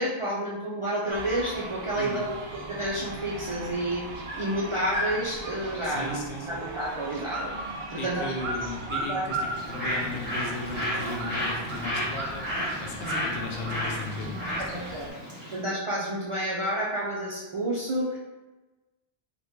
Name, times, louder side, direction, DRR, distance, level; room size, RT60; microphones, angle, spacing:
voice 1, 0.0-2.4 2.7-7.5 7.9-8.3 9.1-9.3 14.7-15.1 15.5-18.2, right 1 dB, 50° right, -7 dB, 0.4 m, -30 dB
Flock of sheep being moved, 1.1-15.1, right 2 dB, 75° right, 0.8 m, -37 dB
voice 2, 2.0-2.3 5.8-6.6 7.9-14.9, left 2 dB, 70° left, 0 dB, 0.8 m, -36 dB
Bird, 9.5-15.6, equal, 10° right, 1.1 m, -33 dB
2.8 x 2.5 x 3.5 m, 1.1 s
omnidirectional pair, 1.0 m